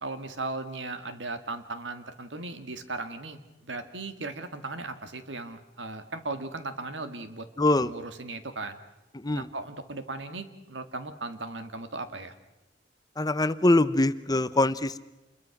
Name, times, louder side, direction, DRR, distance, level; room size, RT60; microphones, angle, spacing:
voice 1, 0.0-7.5 7.8-8.8 9.3-12.4, right 3 dB, 80° right, 9 dB, 2.0 m, -37 dB
voice 2, 7.6-7.9 9.1-9.5 13.2-15.0, left 2 dB, 20° left, 15 dB, 0.7 m, -23 dB
28.0 x 22.0 x 6.0 m, 1.0 s
head